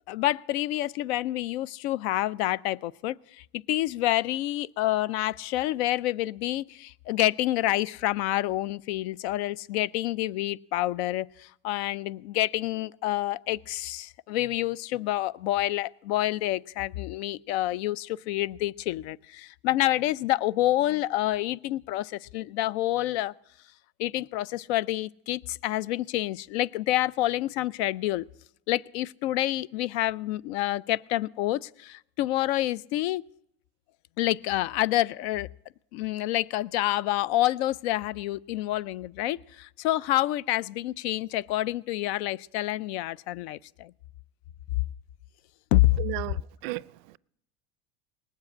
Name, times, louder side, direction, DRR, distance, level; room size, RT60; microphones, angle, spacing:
voice 1, 0.1-23.3 24.0-28.3 28.7-33.2 34.2-35.5 35.9-43.9 45.7-46.0, left 15 dB, 85° left, 0.5 m, -28 dB
voice 2, 46.0-47.2, right 20 dB, 70° right, 0.4 m, -35 dB
19.0 x 7.5 x 8.5 m
cardioid pair, 170°, 32 cm